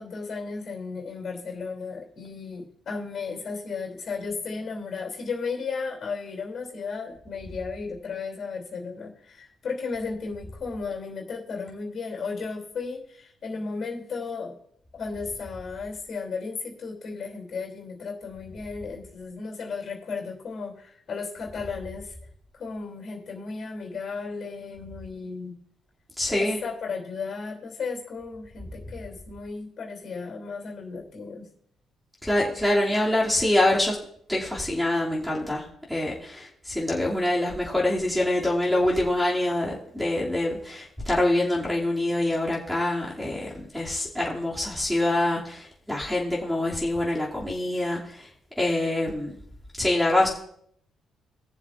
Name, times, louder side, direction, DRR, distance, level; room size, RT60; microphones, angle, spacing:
voice 1, 0.0-14.6 14.9-22.1 22.5-25.6 26.3-31.5, left 4 dB, 55° left, 1 dB, 3.1 m, -34 dB
voice 2, 26.2-26.6 32.2-34.0 34.3-48.3 48.6-49.3 49.8-50.3, left 1 dB, ahead, -6 dB, 2.7 m, -25 dB
20.5 x 7.2 x 2.6 m, 0.67 s
cardioid pair, 90°, 0 cm